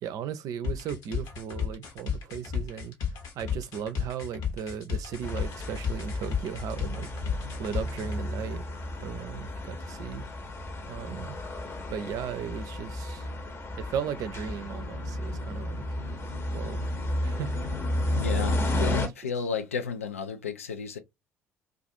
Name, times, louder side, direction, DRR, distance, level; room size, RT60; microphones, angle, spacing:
voice 1, 0.0-2.9 3.3-7.1 7.6-8.7 9.0-10.3 10.9-11.4 11.9-13.3 13.8-15.8 16.5-16.9 17.2-17.7 18.0-18.2 19.0-19.1, right 8 dB, 55° right, 0.5 m, -36 dB
sound 1, 0.6-8.2, left 7 dB, 60° left, 1.1 m, -33 dB
sound 2, 5.2-19.1, left 1 dB, 35° left, 0.9 m, -33 dB
voice 2, 18.1-21.0, left 6 dB, 85° left, 0.4 m, -33 dB
2.4 x 2.4 x 2.6 m
figure-of-eight pair, 55°, 7 cm